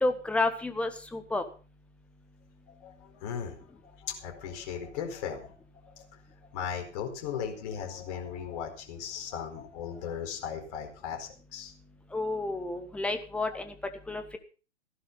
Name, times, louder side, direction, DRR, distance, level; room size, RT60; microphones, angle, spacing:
voice 1, 0.0-1.4 12.1-13.7 14.1-14.4, left 2 dB, 5° left, 8 dB, 1.4 m, -30 dB
voice 2, 2.7-3.6 3.8-5.5 5.9-6.1 6.5-11.7, left 7 dB, 35° left, 3 dB, 4.6 m, -37 dB
15.5 x 11.5 x 5.5 m, 0.37 s
figure-of-eight pair, 120°, 35 cm